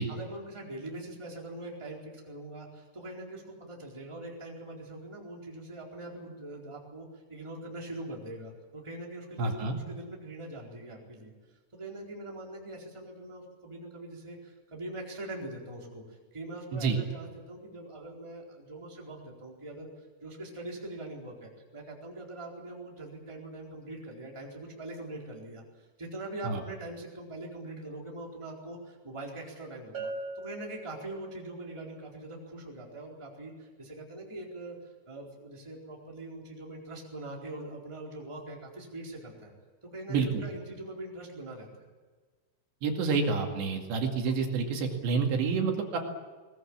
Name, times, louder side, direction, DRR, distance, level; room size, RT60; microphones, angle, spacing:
voice 1, 0.0-11.3 11.7-19.9 20.2-39.5 39.8-41.9, right 1 dB, 5° right, -1 dB, 3.6 m, -42 dB
voice 2, 9.4-9.7 16.7-17.0 26.4-26.6 40.1-40.4 42.8-46.0, right 4 dB, 70° right, 2 dB, 4.4 m, -28 dB
Bell, 29.9-31.6, right 2 dB, 40° right, 4.1 m, -40 dB
21.0 x 20.0 x 8.7 m, 1.4 s
omnidirectional pair, 5.4 m